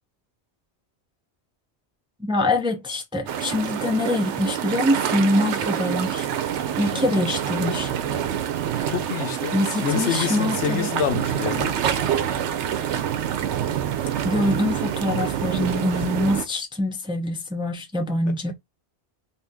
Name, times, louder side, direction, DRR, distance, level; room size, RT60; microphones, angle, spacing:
voice 1, 2.2-8.2 9.5-10.9 14.2-18.5, left 1 dB, 5° right, 0.4 m, -25 dB
sound 1, 3.3-16.4, right 9 dB, 85° right, 0.9 m, -26 dB
voice 2, 6.8-7.3 8.0-8.3 8.9-11.8 15.5-15.8 18.3-18.4, left 7 dB, 85° left, 1.0 m, -28 dB
2.8 x 2.7 x 3.6 m
omnidirectional pair, 1.2 m